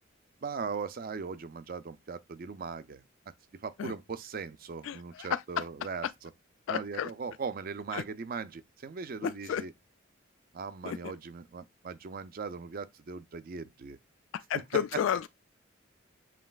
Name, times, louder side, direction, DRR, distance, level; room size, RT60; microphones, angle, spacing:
voice 1, 0.4-3.0 3.6-6.3 6.7-9.7 10.5-14.0 14.5-14.6, right 5 dB, 45° right, 0.4 m, -39 dB
voice 2, 4.8-5.6 6.7-7.1 7.9-8.0 9.2-9.6 10.8-11.0 14.3-15.3, left 8 dB, 70° left, 0.3 m, -32 dB
7.4 x 3.2 x 2.3 m
head